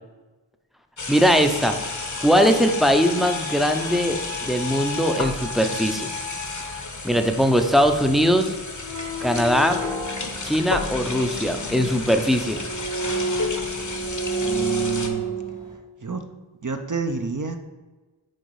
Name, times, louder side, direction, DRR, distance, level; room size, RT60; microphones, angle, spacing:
sound 1, 1.0-15.1, left 3 dB, 40° left, 0.9 m, -32 dB
voice 1, 1.1-1.8 2.2-6.1 7.0-8.6 9.2-9.8 10.4-12.6, equal, ahead, 6 dB, 0.6 m, -20 dB
sound 2, 1.8-6.8, left 7 dB, 70° left, 0.9 m, -36 dB
sound 3, 8.8-15.7, right 2 dB, 75° right, 2.1 m, -30 dB
voice 2, 14.4-15.3 16.0-16.2 16.6-17.7, right 3 dB, 40° right, 6 dB, 0.6 m, -29 dB
6.5 x 4.1 x 4.7 m, 1.2 s
wide cardioid pair, 45°, 47 cm